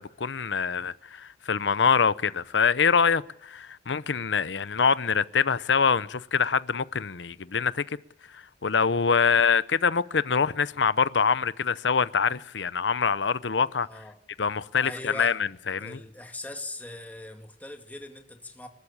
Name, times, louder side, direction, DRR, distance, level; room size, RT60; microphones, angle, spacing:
voice 1, 0.0-7.8 8.3-13.9 14.4-15.4 15.7-16.0, left 6 dB, 75° left, 0.8 m, -25 dB
voice 2, 13.8-14.2 14.8-15.4 15.8-18.7, left 2 dB, 10° left, 2.3 m, -41 dB
28.5 x 13.0 x 8.7 m
head